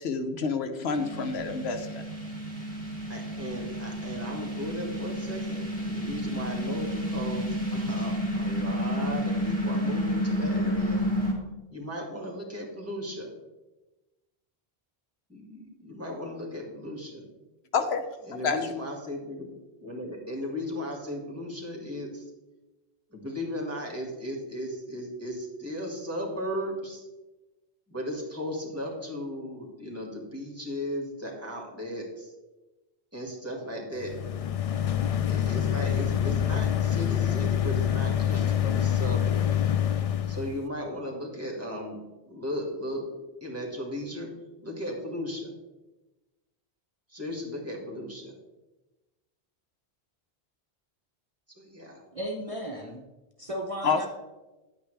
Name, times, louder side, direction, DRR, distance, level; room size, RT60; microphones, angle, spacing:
voice 1, 0.0-2.0 17.7-18.0 18.4-18.6 53.8-54.0, left 5 dB, 75° left, 8 dB, 1.0 m, -28 dB
sound 1, 0.9-11.3, equal, 5° left, 2.7 m, -30 dB
voice 2, 3.1-11.0 11.7-13.3 15.3-17.2 18.3-19.5 19.8-22.3 23.1-27.0 27.9-32.3 33.1-34.1 35.3-39.7 40.3-42.0 42.3-43.1 43.4-44.3 44.6-45.5 47.1-48.3 51.6-52.0, equal, 15° right, -1 dB, 2.1 m, -36 dB
sound 2, 34.0-40.6, left 10 dB, 55° left, 0.4 m, -26 dB
voice 3, 52.1-53.0 53.4-54.1, equal, 35° right, -1 dB, 0.8 m, -35 dB
10.5 x 8.8 x 3.4 m, 1.1 s
omnidirectional pair, 1.1 m